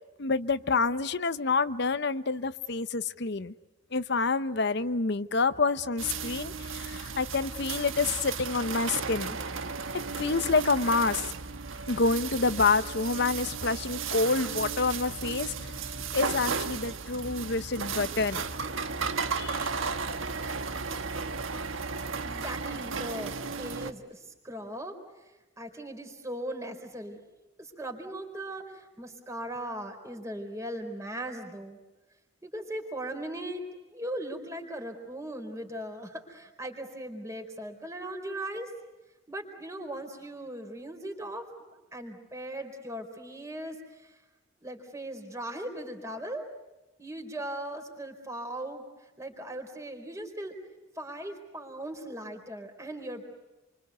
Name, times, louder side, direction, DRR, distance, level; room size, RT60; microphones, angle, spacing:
voice 1, 0.2-3.5 3.9-9.3 10.2-11.3 11.9-15.7 16.1-18.4 19.4-19.6, left 4 dB, 55° left, 12 dB, 0.9 m, -28 dB
sound 1, 6.0-23.9, right 5 dB, 70° right, 1.4 m, -34 dB
voice 2, 22.2-25.3 25.6-27.2 27.6-31.8 32.4-33.7 33.9-38.7 39.3-44.2 44.6-46.4 47.0-48.8 49.2-50.6 51.0-53.2, right 1 dB, 15° right, 4 dB, 4.2 m, -39 dB
29.0 x 25.0 x 8.2 m, 1.1 s
head